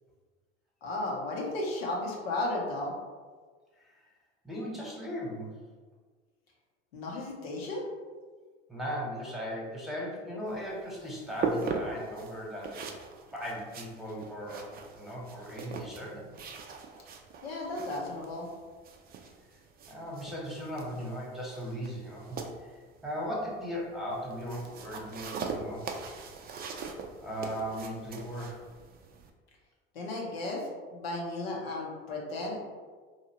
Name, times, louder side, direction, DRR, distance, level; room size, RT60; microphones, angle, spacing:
voice 1, 0.8-3.0 6.9-7.8 17.4-18.5 29.9-32.6, left 2 dB, 90° left, -2 dB, 0.7 m, -34 dB
voice 2, 4.4-5.6 8.7-12.8 13.3-16.3 19.9-22.4 22.7-25.9 27.2-28.6, equal, ahead, -5 dB, 0.9 m, -37 dB
sound 1, 10.5-29.3, right 4 dB, 30° right, 0.4 m, -41 dB
2.8 x 2.4 x 2.8 m, 1.5 s
hypercardioid pair, 75°, 29 cm